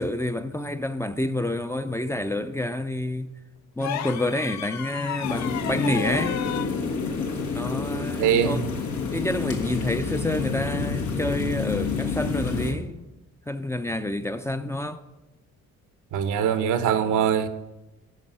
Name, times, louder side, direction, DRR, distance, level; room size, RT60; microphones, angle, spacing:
voice 1, 0.0-3.3 3.8-6.5 7.5-8.6 9.1-13.0 13.5-15.0, left 1 dB, 10° left, 0.5 m, -28 dB
sound 1, 3.8-6.7 8.4-8.6, left 9 dB, 65° left, 0.6 m, -33 dB
sound 2, 5.2-12.7, left 5 dB, 80° left, 1.7 m, -29 dB
voice 2, 8.2-8.6 16.1-17.5, right 8 dB, 80° right, 0.9 m, -22 dB
14.0 x 5.3 x 5.5 m
cardioid pair, 90°, 30 cm